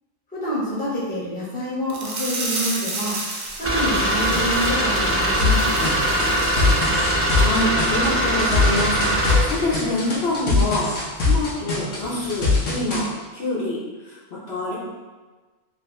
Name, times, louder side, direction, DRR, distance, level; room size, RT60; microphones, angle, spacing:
voice 1, 0.3-3.2 3.6-5.9, equal, 10° left, -8 dB, 0.9 m, -27 dB
sound 1, 1.9-6.9 7.2-7.4 7.8-7.9, right 2 dB, 55° right, 0.6 m, -32 dB
sound 2, 3.6-10.2 11.9-12.5, right 1 dB, 20° right, 0.4 m, -22 dB
sound 3, 5.4-13.0, left 3 dB, 80° left, 1.1 m, -22 dB
voice 2, 7.3-10.9 11.2-13.8 14.1-14.8, left 2 dB, 60° left, -7 dB, 1.0 m, -26 dB
3.0 x 2.7 x 3.1 m, 1.3 s
omnidirectional pair, 1.2 m